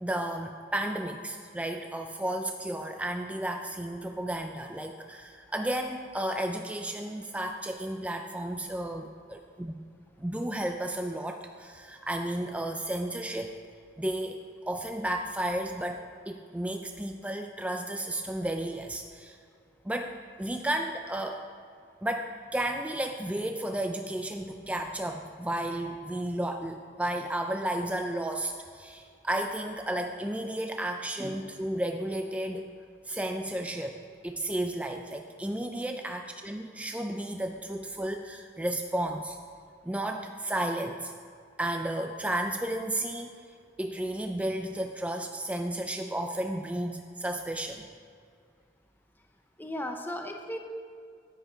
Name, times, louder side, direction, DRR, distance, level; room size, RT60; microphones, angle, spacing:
voice 1, 0.0-9.7 10.2-13.5 14.0-19.4 19.8-21.5 22.0-32.7 33.0-34.0 34.2-39.4 39.8-41.1 41.6-43.4 43.8-47.9, right 1 dB, 10° right, 4 dB, 0.4 m, -33 dB
voice 2, 49.6-50.6, left 1 dB, 10° left, 3 dB, 0.8 m, -36 dB
10.0 x 9.1 x 4.5 m, 2.2 s
head